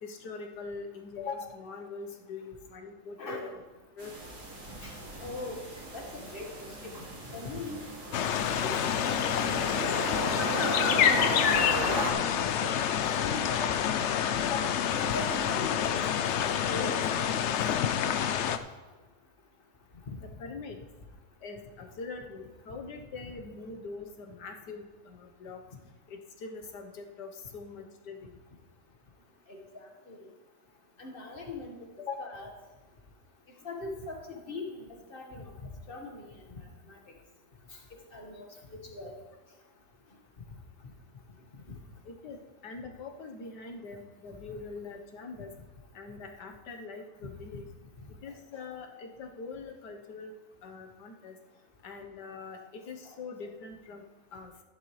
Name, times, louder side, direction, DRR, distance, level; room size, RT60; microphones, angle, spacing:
voice 1, 0.0-3.5 4.0-4.3 11.9-12.2 14.4-14.8 20.2-20.8 21.4-25.6 26.1-28.3 32.0-32.4 42.0-42.4 42.6-45.5 45.9-47.7 48.2-50.3 50.6-51.4 51.8-54.0 54.3-54.5, left 4 dB, 85° left, 4 dB, 1.7 m, -42 dB
sound 1, 4.0-12.1, right 1 dB, 75° right, 2.7 m, -36 dB
voice 2, 4.8-5.6 5.9-7.0 7.3-7.8 8.6-9.9 11.0-11.9 12.2-13.7 15.0-17.1 20.1-20.2 29.5-30.3 31.0-31.8 32.2-32.5 33.6-36.6 36.9-37.0 37.9-39.2 41.7-41.8 48.0-48.1 48.5-48.6 53.0-53.1, left 2 dB, 35° left, 1 dB, 1.6 m, -41 dB
sound 2, 8.1-18.6, left 9 dB, 70° left, 0.6 m, -27 dB
14.0 x 11.0 x 3.2 m, 1.3 s
omnidirectional pair, 1.7 m